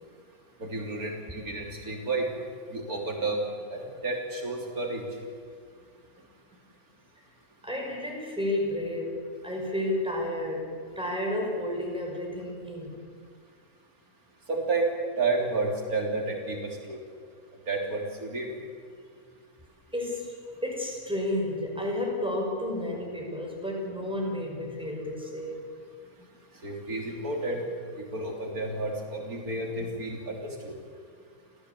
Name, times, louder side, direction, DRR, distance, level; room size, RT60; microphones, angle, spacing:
voice 1, 0.6-2.3 2.7-3.4 3.7-5.0 14.5-14.9 15.2-17.0 17.7-18.5 26.6-27.6 28.1-30.7, right 3 dB, 80° right, 1 dB, 3.9 m, -31 dB
voice 2, 7.6-9.2 9.4-13.0 19.9-25.6, left 1 dB, 5° right, -1 dB, 5.7 m, -31 dB
29.0 x 16.0 x 8.3 m, 2.1 s
omnidirectional pair, 1.5 m